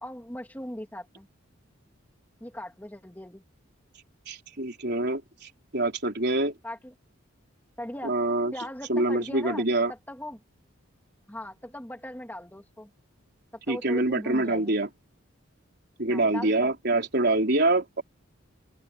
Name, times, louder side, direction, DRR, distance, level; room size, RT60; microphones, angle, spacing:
voice 1, 0.0-1.3 2.4-3.4 6.6-6.9 7.8-8.2 8.5-9.6 9.9-10.4 11.3-12.9 13.7-14.7 16.1-16.7, left 1 dB, 10° left, 2.4 m, -39 dB
voice 2, 4.3-5.2 5.7-6.5 8.0-8.5 8.9-9.9 13.7-14.9 16.0-18.0, right 2 dB, 55° right, 4.0 m, -25 dB
open air
head